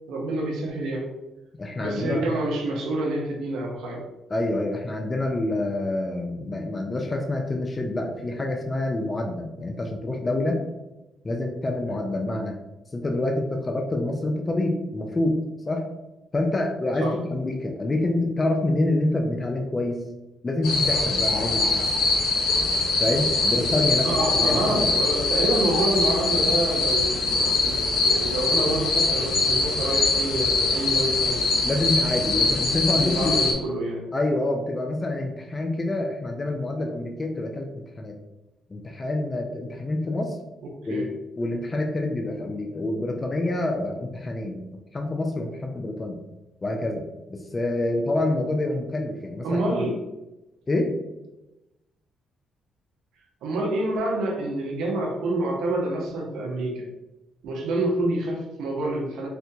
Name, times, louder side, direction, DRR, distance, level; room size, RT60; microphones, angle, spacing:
voice 1, 0.1-1.1 1.8-4.0 17.0-17.2 24.0-31.5 32.9-34.1 40.9-41.1 49.4-50.0 53.4-56.9 57.4-59.3, right 1 dB, 90° right, 0 dB, 0.8 m, -27 dB
voice 2, 1.5-2.2 4.3-10.6 11.2-12.5 12.9-15.4 15.7-15.9 16.3-20.0 20.4-21.8 23.0-24.1 24.4-25.0 31.6-33.4 34.1-38.1 38.7-40.4 40.9-41.0 41.4-44.6 44.9-46.2 46.6-47.0 47.3-49.6 50.7-50.9, left 2 dB, 25° left, 2 dB, 0.4 m, -27 dB
sound 1, 20.6-33.5, left 3 dB, 85° left, 0.7 m, -23 dB
4.3 x 2.2 x 2.7 m, 0.97 s
cardioid pair, 90°, 0 cm